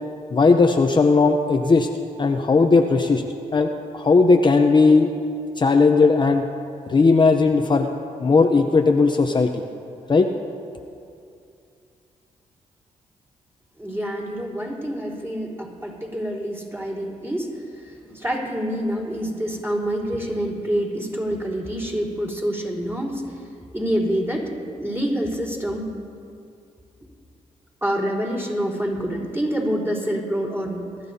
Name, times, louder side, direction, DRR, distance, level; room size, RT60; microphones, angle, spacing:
voice 1, 0.3-1.9 2.2-3.2 3.5-5.1 5.6-6.5 6.9-7.9 8.2-9.6 10.1-10.3, left 4 dB, 35° left, 4 dB, 0.7 m, -17 dB
voice 2, 13.8-17.5 17.8-23.2 23.7-24.5 24.8-25.9 27.8-30.9, equal, 20° right, -5 dB, 3.8 m, -26 dB
23.0 x 13.0 x 2.8 m, 2.5 s
cardioid pair, 80°, 14 cm